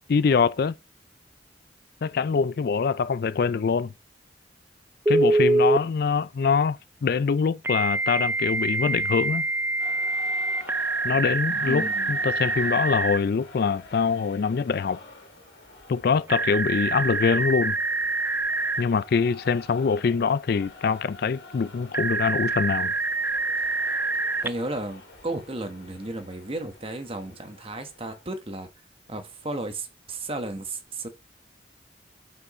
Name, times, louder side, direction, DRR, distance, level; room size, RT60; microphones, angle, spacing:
voice 1, 0.1-0.7 2.0-3.9 5.1-9.4 11.0-15.0 15.9-17.8 18.8-22.9, left 5 dB, 60° left, 0.4 m, -24 dB
Telephone, 5.1-5.8 7.6-13.2 16.3-18.8 21.9-24.5, right 2 dB, 10° right, 0.3 m, -25 dB
sound 1, 9.8-28.3, left 3 dB, 75° left, 2.3 m, -47 dB
voice 2, 11.6-12.1 24.4-28.7 29.1-31.1, right 2 dB, 30° right, 1.2 m, -34 dB
6.1 x 5.6 x 4.2 m
head